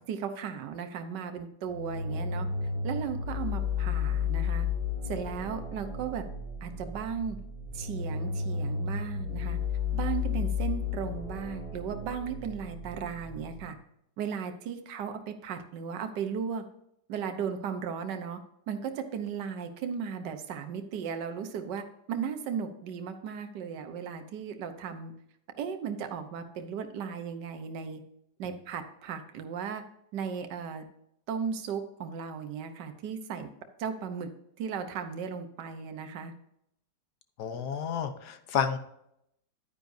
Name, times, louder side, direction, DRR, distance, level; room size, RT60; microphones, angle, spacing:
voice 1, 0.1-2.5 2.8-4.7 5.1-6.3 6.6-7.4 7.7-9.6 9.9-13.8 14.2-16.6 17.1-18.4 18.7-25.1 25.6-28.0 28.4-29.8 30.1-30.8 31.3-33.5 33.8-34.3 34.6-36.3, right 7 dB, 70° right, 6 dB, 1.6 m, -36 dB
sound 1, 1.7-13.6, left 5 dB, 25° left, 4.0 m, -33 dB
voice 2, 37.4-38.8, left 7 dB, 65° left, 10 dB, 1.4 m, -30 dB
10.5 x 9.6 x 2.7 m, 0.76 s
omnidirectional pair, 2.0 m